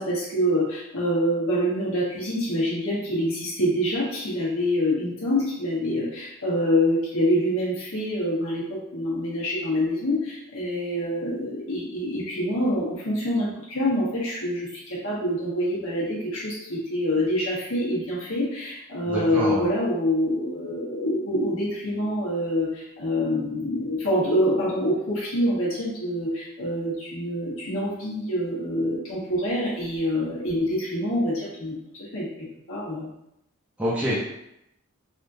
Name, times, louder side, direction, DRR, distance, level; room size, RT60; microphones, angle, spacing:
voice 1, 0.0-32.3 32.7-33.1, equal, 65° left, -7 dB, 1.1 m, -26 dB
voice 2, 19.0-19.7 33.8-34.2, equal, 5° right, -9 dB, 0.6 m, -26 dB
3.5 x 2.4 x 2.6 m, 0.81 s
head